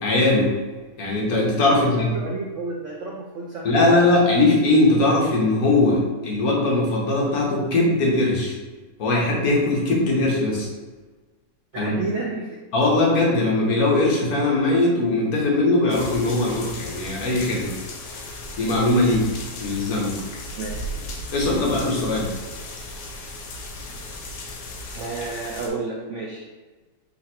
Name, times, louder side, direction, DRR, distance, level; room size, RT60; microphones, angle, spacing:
voice 1, 0.0-0.5 1.0-2.1 3.6-8.6 9.0-10.7 11.8-11.9 12.7-17.7 18.6-19.3 19.6-20.2 21.3-22.3, left 2 dB, 60° left, -3 dB, 1.4 m, -20 dB
voice 2, 1.7-4.3 11.7-12.6 20.6-20.8 24.9-26.5, right 3 dB, 70° right, -2 dB, 0.7 m, -31 dB
sound 1, 15.9-25.7, left 1 dB, 80° left, 1.3 m, -35 dB
3.9 x 2.6 x 4.2 m, 1.3 s
omnidirectional pair, 1.8 m